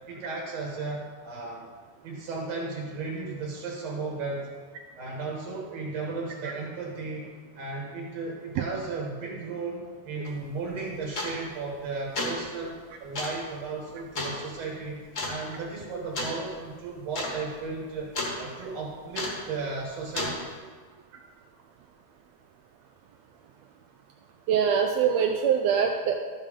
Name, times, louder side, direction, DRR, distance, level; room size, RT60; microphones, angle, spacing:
voice 1, 0.1-1.7 2.0-4.5 5.0-7.3 7.5-15.0 15.3-18.1 18.4-20.4, right 3 dB, 60° right, -2 dB, 2.4 m, -35 dB
sound 1, 10.2-10.4 11.1-11.5 12.0-12.4 13.1-13.4 14.1-14.4 15.1-15.4 16.1-16.4 16.7-16.8 17.1-17.4 17.6-18.4 19.1-19.5 20.1-20.4, left 2 dB, 40° left, 1.2 m, -31 dB
voice 2, 24.5-26.2, right 7 dB, 85° right, 4 dB, 1.5 m, -23 dB
13.0 x 5.5 x 5.0 m, 1.5 s
omnidirectional pair, 3.6 m